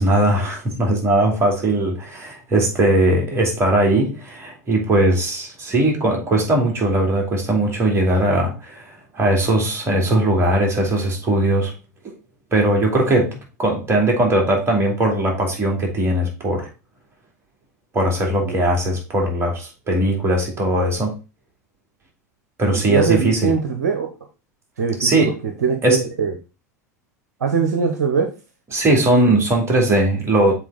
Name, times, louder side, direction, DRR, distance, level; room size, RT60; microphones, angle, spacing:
voice 1, 0.0-11.7 12.0-12.1 12.5-16.7 17.9-21.1 22.6-23.5 25.0-25.3 25.8-26.0 28.7-30.5, right 1 dB, 30° right, 0 dB, 2.7 m, -19 dB
voice 2, 22.7-24.1 24.8-26.3 27.4-28.3, right 5 dB, 70° right, 5 dB, 0.9 m, -22 dB
7.5 x 3.8 x 4.0 m, 0.31 s
figure-of-eight pair, 80°, 9 cm